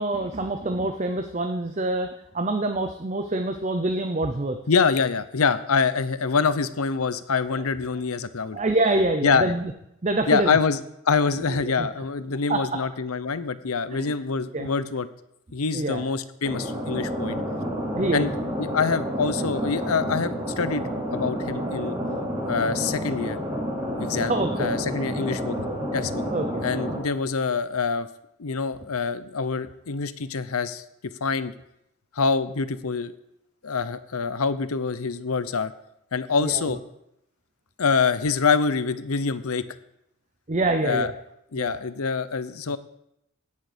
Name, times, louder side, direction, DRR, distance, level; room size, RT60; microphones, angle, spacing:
voice 1, 0.0-4.6 8.5-9.7 10.0-10.6 11.5-11.9 12.5-12.6 13.9-14.1 14.5-14.7 15.7-16.1 17.9-18.3 24.1-25.1 25.7-25.8 26.3-26.6 36.4-36.8 40.5-41.1 41.6-41.7, right 2 dB, 30° right, 6 dB, 0.6 m, -26 dB
voice 2, 4.7-8.6 9.2-9.5 10.3-10.8 11.0-15.1 15.5-17.4 18.1-18.3 18.6-20.8 21.1-22.0 22.5-23.4 24.0-24.3 24.6-25.7 25.9-26.2 26.6-28.1 28.4-30.8 31.2-31.5 32.1-33.1 33.6-35.7 36.1-36.8 37.8-39.7 40.8-41.1 41.5-42.8, left 5 dB, 85° left, 14 dB, 0.7 m, -25 dB
sound 1, 16.4-27.0, equal, 15° right, 3.5 m, -29 dB
17.0 x 6.5 x 5.1 m, 0.81 s
head